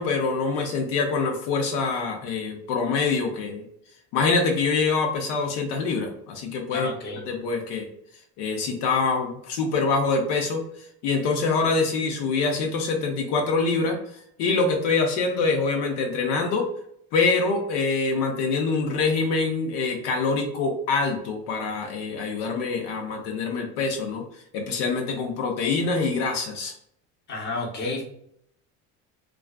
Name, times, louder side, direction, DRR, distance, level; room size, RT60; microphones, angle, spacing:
voice 1, 0.0-3.6 4.1-7.9 8.4-10.6 11.0-14.0 14.4-16.7 17.1-26.7, left 4 dB, 75° left, 2 dB, 0.6 m, -25 dB
voice 2, 6.7-7.2 27.3-28.0, left 2 dB, 30° left, -3 dB, 0.8 m, -30 dB
2.4 x 2.4 x 2.3 m, 0.70 s
supercardioid pair, 100°, 37 cm